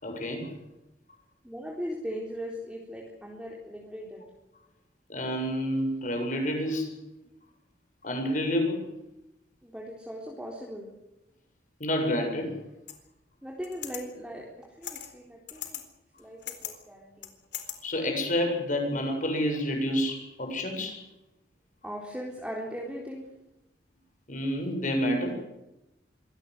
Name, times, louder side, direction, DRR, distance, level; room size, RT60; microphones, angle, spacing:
voice 1, 0.0-0.5 5.1-6.9 8.0-8.8 11.8-12.5 17.8-21.0 24.3-25.4, equal, 45° left, 3 dB, 7.5 m, -29 dB
voice 2, 1.4-4.2 9.6-10.9 13.4-15.8 16.2-17.3 21.8-23.2, equal, 5° right, -2 dB, 3.9 m, -39 dB
sound 1, 12.9-13.0 13.6-14.0 14.8-15.1 15.5-15.8 16.2-16.7 17.2-17.7, left 11 dB, 85° left, 4.0 m, -38 dB
24.5 x 18.0 x 8.0 m, 0.94 s
head